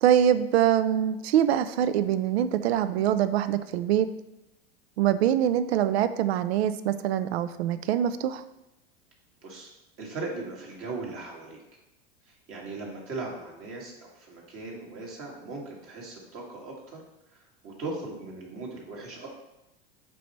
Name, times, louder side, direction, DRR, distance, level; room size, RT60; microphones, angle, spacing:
voice 1, 0.0-4.1 5.0-8.4, right 10 dB, 80° right, 13 dB, 0.5 m, -24 dB
voice 2, 10.0-11.6 12.3-17.0 17.6-19.3, right 3 dB, 45° right, -2 dB, 2.1 m, -38 dB
6.9 x 4.7 x 3.1 m, 0.89 s
hypercardioid pair, 105°, 32 cm